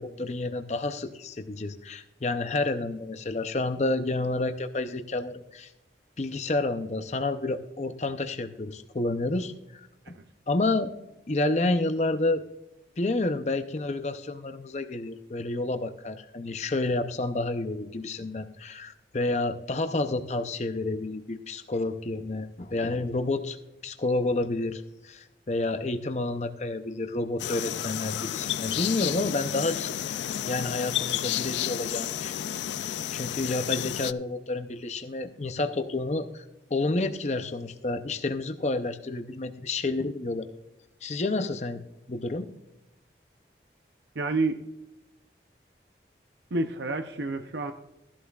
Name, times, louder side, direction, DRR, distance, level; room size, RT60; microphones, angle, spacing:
voice 1, 0.0-5.7 6.2-10.1 10.5-10.9 11.3-12.4 13.0-23.6 23.8-29.9 30.5-32.3 32.8-36.4 36.7-40.5 41.0-41.8 42.1-42.5, left 2 dB, 40° left, 8 dB, 0.6 m, -29 dB
sound 1, 27.4-34.1, left 11 dB, 85° left, 0.4 m, -31 dB
voice 2, 44.2-44.6 46.5-47.7, right 2 dB, 80° right, 6 dB, 0.7 m, -28 dB
15.5 x 11.5 x 2.4 m, 0.92 s
head